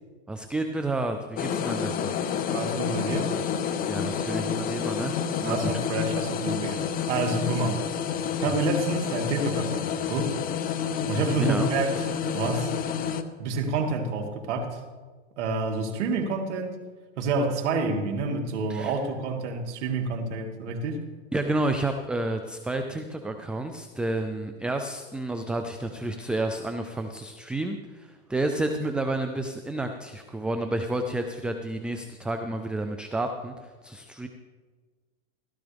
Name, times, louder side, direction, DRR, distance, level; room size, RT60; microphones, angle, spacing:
voice 1, 0.3-2.1 3.9-5.1 5.4-5.7 11.4-11.7 18.7-18.9 21.3-33.5 33.8-34.3, right 2 dB, 5° right, 6 dB, 0.3 m, -30 dB
sound 1, 1.4-13.2, left 7 dB, 25° left, 0.8 m, -29 dB
voice 2, 2.5-3.4 5.4-7.8 8.4-10.4 11.1-12.0 12.3-12.7 13.4-14.8 15.4-16.8 17.2-21.0, right 3 dB, 75° right, 3 dB, 2.4 m, -28 dB
16.0 x 12.5 x 3.5 m, 1.4 s
supercardioid pair, 130°, 35 cm